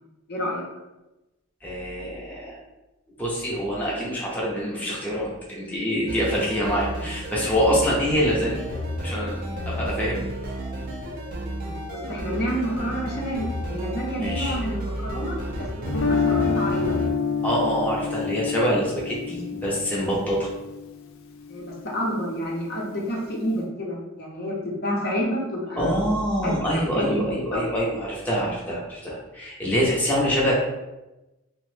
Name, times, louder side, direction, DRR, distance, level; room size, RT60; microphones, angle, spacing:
voice 1, 0.3-0.6 11.9-15.7 16.0-17.0 21.5-24.6 24.8-25.9 26.4-26.6 26.9-27.2 27.5-27.6, equal, 55° left, -3 dB, 0.7 m, -29 dB
voice 2, 1.6-2.6 3.2-8.6 9.0-10.5 14.2-14.5 17.4-20.5 25.8-30.5, equal, 10° left, -6 dB, 0.6 m, -25 dB
sound 1, 6.1-17.1, right 1 dB, 45° right, 0.4 m, -32 dB
Guitar, 15.9-21.9, left 5 dB, 75° left, 0.3 m, -28 dB
2.9 x 2.1 x 3.1 m, 1.0 s
head